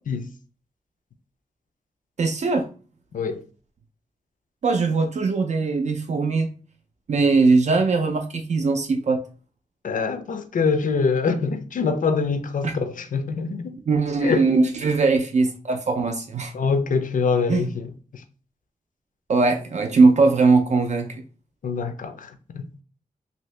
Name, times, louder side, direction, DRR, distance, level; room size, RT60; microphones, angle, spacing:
voice 1, 2.2-2.7 4.6-6.5 7.1-9.2 12.6-12.7 13.9-16.5 17.5-17.7 19.3-21.2, right 3 dB, 55° right, 0.4 m, -20 dB
voice 2, 9.8-13.7 14.2-14.5 16.5-17.9 21.6-22.6, left 5 dB, 70° left, 0.5 m, -24 dB
2.7 x 2.7 x 3.2 m
wide cardioid pair, 160°, 14 cm